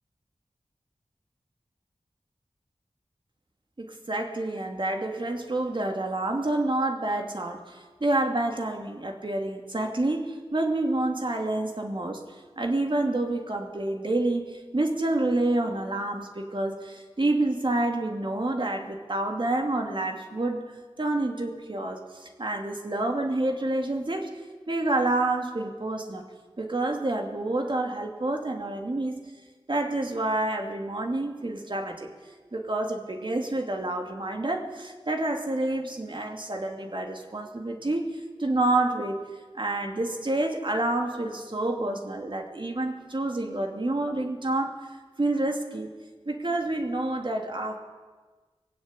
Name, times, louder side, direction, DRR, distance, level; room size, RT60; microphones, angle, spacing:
voice 1, 3.8-12.2 12.6-24.3 24.7-26.2 26.6-29.2 29.7-32.1 32.5-39.2 39.5-44.8 45.2-45.9 46.3-47.8, right 2 dB, 50° right, 3 dB, 2.6 m, -28 dB
20.5 x 16.0 x 9.8 m, 1.4 s
wide cardioid pair, 60°, 11 cm